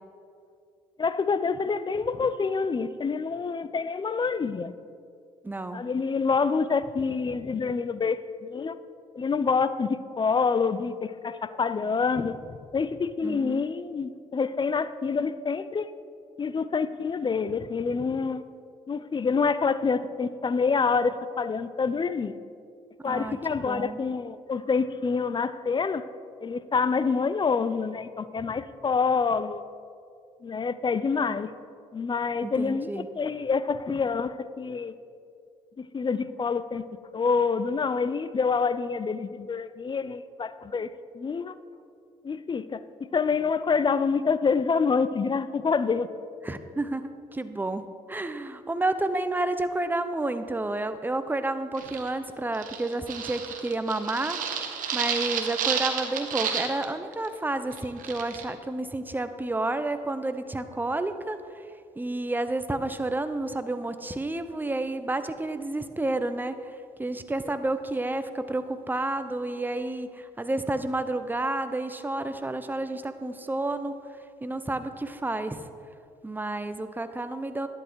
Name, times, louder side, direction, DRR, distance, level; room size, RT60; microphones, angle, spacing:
voice 1, 1.0-4.7 5.7-8.8 9.2-12.4 12.7-15.9 16.4-18.4 18.9-22.4 23.0-26.0 26.4-29.6 30.4-31.5 31.9-34.9 35.8-36.8 37.1-40.9 41.1-41.6 42.2-46.1, left 5 dB, 30° left, 14 dB, 0.6 m, -27 dB
voice 2, 5.4-5.8 13.2-13.6 23.0-24.0 32.4-33.1 46.4-47.0 47.3-47.8 48.1-61.4 62.0-74.0 74.4-75.6 76.2-77.7, right 2 dB, 15° right, 10 dB, 0.8 m, -30 dB
sound 1, 51.8-52.1 52.5-56.9 57.1-57.3 57.7-58.4, right 7 dB, 70° right, 1.3 m, -31 dB
11.0 x 8.7 x 4.7 m, 2.3 s
hypercardioid pair, 55°, 15 cm